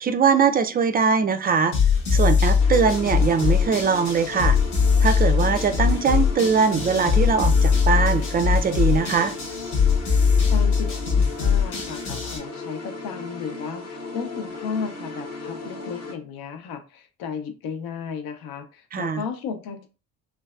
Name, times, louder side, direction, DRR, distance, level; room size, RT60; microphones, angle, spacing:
voice 1, 0.0-1.7 2.1-4.6 5.0-9.4 18.9-19.2, right 6 dB, 25° right, 9 dB, 0.4 m, -21 dB
sound 1, 1.7-12.4, left 6 dB, 80° left, 1.1 m, -21 dB
sound 2, 2.6-16.1, left 3 dB, 35° left, 1.0 m, -36 dB
voice 2, 10.5-19.9, left 6 dB, 60° left, 7 dB, 0.7 m, -34 dB
3.2 x 2.2 x 2.3 m, 0.33 s
hypercardioid pair, 50°, 41 cm